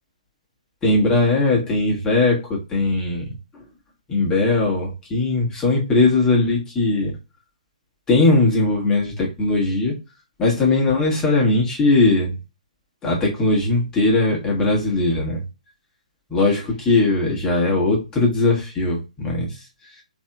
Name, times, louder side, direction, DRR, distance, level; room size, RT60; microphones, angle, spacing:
voice 1, 0.8-3.3 4.1-7.1 8.1-9.9 10.4-12.4 13.0-15.4 16.3-19.6, left 2 dB, 15° left, -3 dB, 1.3 m, -19 dB
3.4 x 2.8 x 2.3 m, 0.28 s
figure-of-eight pair, 130°, 4 cm